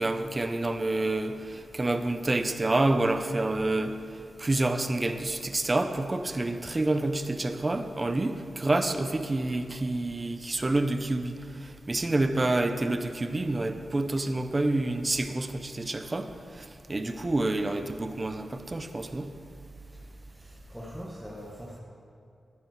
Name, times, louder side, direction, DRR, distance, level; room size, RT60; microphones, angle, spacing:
voice 1, 0.0-4.0 4.4-11.4 11.9-16.3 16.5-19.3, right 2 dB, 20° right, 8 dB, 0.7 m, -28 dB
voice 2, 19.9-21.8, equal, ahead, -5 dB, 1.2 m, -43 dB
12.5 x 12.0 x 4.6 m, 2.6 s
wide cardioid pair, 165°, 0 cm